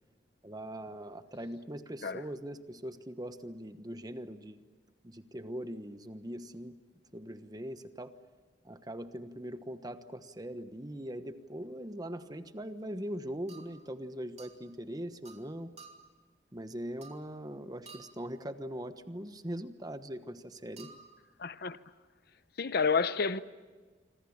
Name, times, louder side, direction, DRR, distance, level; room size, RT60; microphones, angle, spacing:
voice 1, 0.4-4.6 5.0-6.8 7.1-8.1 8.6-15.7 16.5-20.9, equal, 20° right, 1.2 m, -41 dB
sound 1, 12.1-12.3 13.5-13.9 14.4-14.6 15.2-15.5 15.8-16.2 17.0-17.4 17.9-18.3 20.8-21.2, right 5 dB, 35° right, 2.6 m, -53 dB
voice 2, 21.4-21.8 22.6-23.4, left 5 dB, 55° left, 0.8 m, -29 dB
27.0 x 25.5 x 7.3 m
head